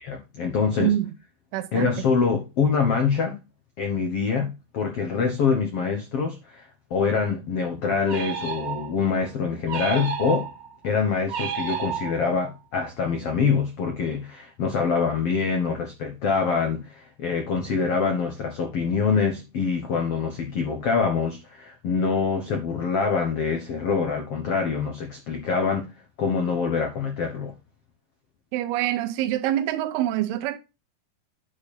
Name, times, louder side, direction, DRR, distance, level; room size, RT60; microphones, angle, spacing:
voice 1, 0.1-0.9 1.7-3.4 3.8-10.5 10.8-25.9 26.2-27.5, left 5 dB, 85° left, 1.3 m, -25 dB
voice 2, 0.8-1.1 1.5-2.0 28.5-30.6, right 13 dB, 85° right, 2.7 m, -25 dB
sound 1, 8.1-9.1 9.7-10.7 11.3-12.5, right 7 dB, 40° right, 1.6 m, -31 dB
10.0 x 5.1 x 4.3 m
omnidirectional pair, 4.6 m